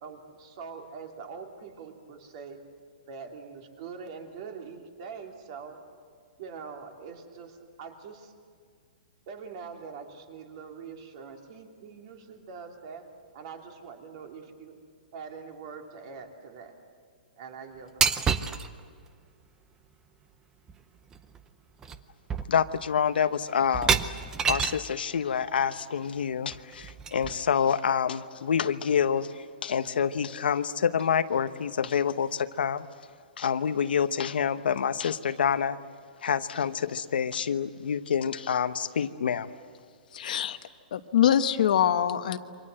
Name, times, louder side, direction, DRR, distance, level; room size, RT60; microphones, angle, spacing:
voice 1, 0.0-2.6 3.1-5.8 6.4-8.3 9.3-13.1 13.3-14.8 15.1-16.7 17.4-18.3, right 5 dB, 35° right, 3 dB, 2.9 m, -43 dB
sound 1, 18.0-18.7 20.7-20.8 21.1-21.4 21.8-22.0 22.3-22.9 23.7-24.9 26.5-27.5, right 6 dB, 10° right, 0.7 m, -28 dB
voice 2, 22.5-24.0 24.5-32.9 33.4-35.8 36.2-39.5, left 7 dB, 85° left, 10 dB, 1.1 m, -27 dB
voice 3, 40.1-40.6 40.9-42.4, left 10 dB, 55° left, 9 dB, 1.2 m, -23 dB
28.0 x 24.5 x 7.7 m, 2.2 s
hypercardioid pair, 170°, 5 cm